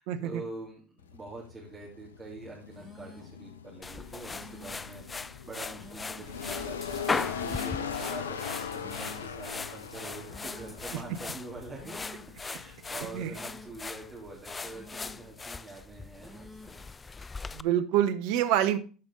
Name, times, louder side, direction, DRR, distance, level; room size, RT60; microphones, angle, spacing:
voice 1, 0.0-11.9 12.4-16.8, right 3 dB, 25° right, -3 dB, 3.0 m, -45 dB
sound 1, 1.0-15.5, left 7 dB, 85° left, 0.6 m, -41 dB
sound 2, 2.7-3.4 4.2-4.9 5.7-6.4 7.2-7.9 8.7-9.4 10.2-10.9 11.7-12.4 13.2-13.9 14.7-15.4 16.2-16.9, equal, 5° left, 2.4 m, -51 dB
sound 3, 3.8-17.6, left 4 dB, 20° left, 0.4 m, -39 dB
voice 2, 17.5-18.8, right 11 dB, 65° right, 11 dB, 0.9 m, -26 dB
13.5 x 5.3 x 3.8 m, 0.37 s
hypercardioid pair, 70°, 0 cm